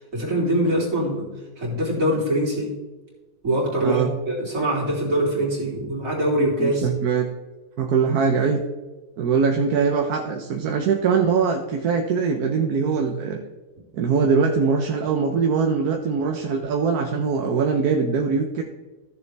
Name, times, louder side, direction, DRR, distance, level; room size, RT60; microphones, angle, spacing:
voice 1, 0.1-1.3 1.6-2.7 3.4-6.9, right 1 dB, 60° right, -3 dB, 3.5 m, -23 dB
voice 2, 6.6-7.3 7.8-8.6 9.2-13.4 13.9-18.6, right 5 dB, 80° right, 3 dB, 1.4 m, -22 dB
14.5 x 6.9 x 3.4 m, 1.2 s
omnidirectional pair, 1.6 m